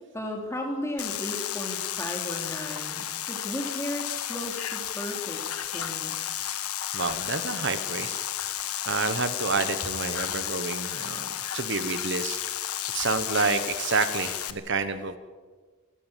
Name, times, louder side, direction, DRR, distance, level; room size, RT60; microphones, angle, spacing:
voice 1, 0.1-6.2, equal, 10° left, 1 dB, 3.4 m, -35 dB
sound 1, 1.0-14.5, left 11 dB, 80° left, 1.3 m, -32 dB
voice 2, 6.9-8.2 8.9-12.4 12.9-15.2, right 4 dB, 55° right, 10 dB, 1.2 m, -29 dB
27.5 x 13.5 x 7.5 m, 1.4 s
head